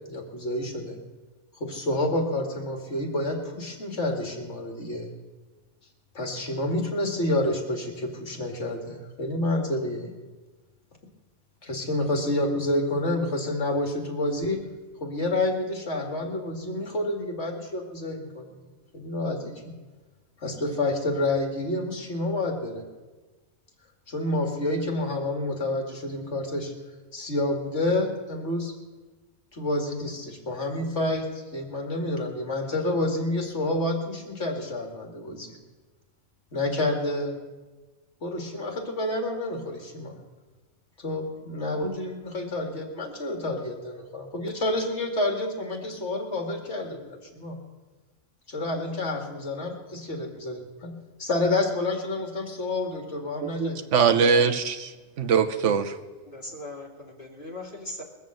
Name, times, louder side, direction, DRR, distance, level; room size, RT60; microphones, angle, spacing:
voice 1, 0.1-1.0 1.6-5.1 6.1-10.1 11.6-14.6 15.0-18.5 18.9-19.7 20.4-22.8 24.1-26.7 27.1-28.7 29.5-35.6 36.5-37.4 38.2-40.2 41.0-47.6 48.5-53.8 54.3-54.4, left 1 dB, 55° left, 2 dB, 2.3 m, -29 dB
voice 2, 53.4-54.9 55.2-56.0, right 6 dB, 60° right, 8 dB, 1.2 m, -22 dB
voice 3, 56.3-58.0, left 1 dB, 35° left, -2 dB, 2.8 m, -39 dB
21.0 x 7.0 x 7.7 m, 1.3 s
omnidirectional pair, 1.4 m